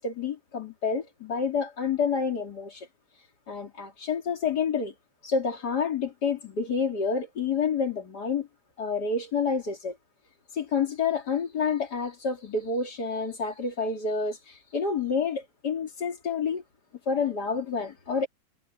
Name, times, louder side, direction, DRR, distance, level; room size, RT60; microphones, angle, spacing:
voice 1, 0.0-2.9 3.5-4.9 5.2-8.5 8.8-10.0 10.5-16.6 17.1-18.3, left 5 dB, 35° left, 3.2 m, -28 dB
omnidirectional pair, 3.4 m